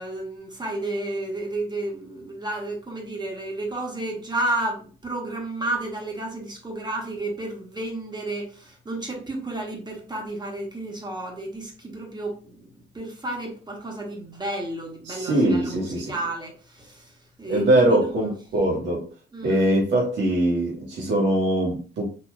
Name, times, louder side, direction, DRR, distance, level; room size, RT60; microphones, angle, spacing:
voice 1, 0.0-18.3 19.3-19.6, right 2 dB, 20° right, 1.3 m, -32 dB
voice 2, 15.0-16.1 17.5-19.0 19.4-22.1, right 1 dB, 65° right, 1.4 m, -22 dB
4.1 x 2.8 x 2.3 m
cardioid pair, 90°, 20 cm